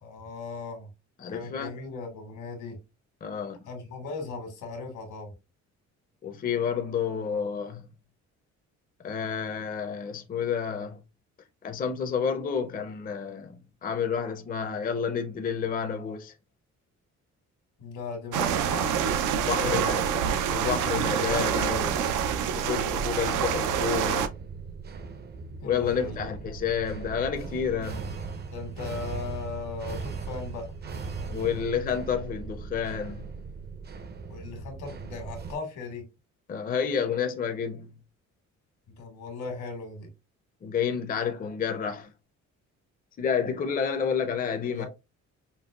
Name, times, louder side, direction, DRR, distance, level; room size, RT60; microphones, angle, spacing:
voice 1, 0.0-0.9 1.3-2.8 3.6-5.3 17.8-18.9 19.2-19.8 20.1-20.2 25.6-26.3 28.5-30.7 34.3-36.0 39.0-40.1 44.7-44.9, left 4 dB, 80° left, 1.4 m, -37 dB
voice 2, 1.2-1.7 3.2-3.6 6.2-7.8 9.0-11.0 11.6-13.6 13.8-16.3 19.4-20.0 20.5-22.1 22.5-24.3 25.6-28.2 31.3-33.3 36.5-37.9 40.6-42.1 43.2-44.9, left 7 dB, 30° left, 0.5 m, -30 dB
sound 1, 18.3-24.3, right 8 dB, 85° right, 0.5 m, -26 dB
sound 2, 21.5-35.6, right 4 dB, 35° right, 0.5 m, -39 dB
5.3 x 2.1 x 2.3 m
cardioid pair, 90°, 30 cm